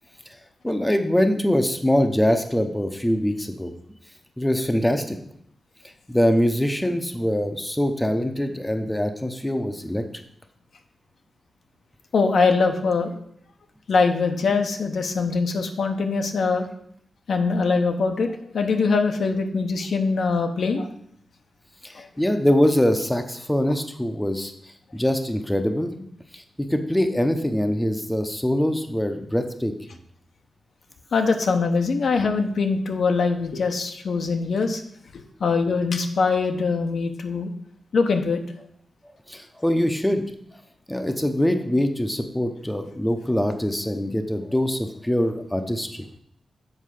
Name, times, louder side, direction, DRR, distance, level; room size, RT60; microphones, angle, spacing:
voice 1, 0.6-3.7 4.4-5.2 6.1-10.0 21.8-24.5 24.9-26.1 26.3-29.7 39.3-40.2 40.9-46.1, equal, 5° left, 6 dB, 0.8 m, -23 dB
voice 2, 12.1-13.1 13.9-16.7 17.3-20.9 21.9-22.1 31.1-34.8 35.1-37.5 37.9-38.4, left 4 dB, 75° left, 5 dB, 1.0 m, -22 dB
7.6 x 4.5 x 6.5 m, 0.69 s
wide cardioid pair, 95°, 0 cm